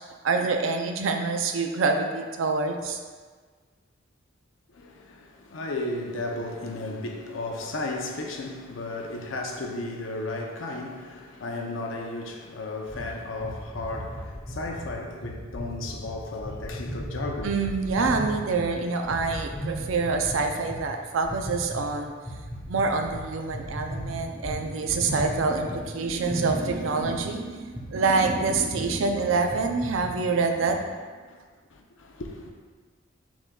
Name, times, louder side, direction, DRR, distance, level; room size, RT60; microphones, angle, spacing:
voice 1, 0.2-3.0 17.4-22.1 22.7-30.9, right 4 dB, 85° right, 0.5 m, -26 dB
voice 2, 4.7-17.6 31.2-31.4 31.7-32.5, left 2 dB, 80° left, 0.6 m, -34 dB
sound 1, 12.9-18.7 19.0-20.8 21.2-21.9 22.2-25.8 26.1-27.2 27.7-27.9 28.3-28.5 28.7-28.9 29.3-30.1, equal, 5° left, 1.3 m, -36 dB
6.1 x 3.6 x 2.3 m
head